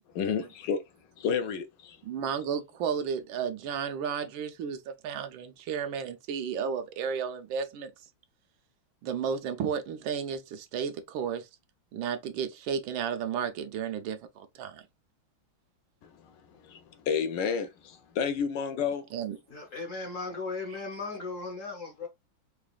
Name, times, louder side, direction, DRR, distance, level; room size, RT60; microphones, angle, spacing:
voice 1, 0.1-0.8 1.2-2.0 16.0-19.1, left 6 dB, 75° left, 1.1 m, -31 dB
voice 2, 2.0-7.9 9.0-11.5 11.9-14.9 19.1-19.4, right 7 dB, 85° right, 1.5 m, -33 dB
voice 3, 19.5-22.1, left 3 dB, 55° left, 1.0 m, -37 dB
4.9 x 2.4 x 2.3 m
omnidirectional pair, 2.2 m